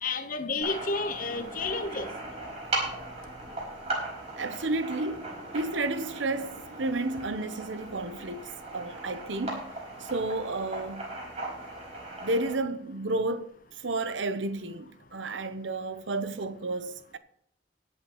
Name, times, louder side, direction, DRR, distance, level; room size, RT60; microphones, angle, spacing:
voice 1, 0.0-2.1, left 3 dB, 45° left, 1.0 m, -31 dB
sound 1, 0.6-12.5, right 2 dB, 35° right, 4.7 m, -38 dB
voice 2, 4.4-9.6 10.0-11.2 12.2-17.2, right 2 dB, 85° right, 0.9 m, -32 dB
23.0 x 7.8 x 3.1 m
head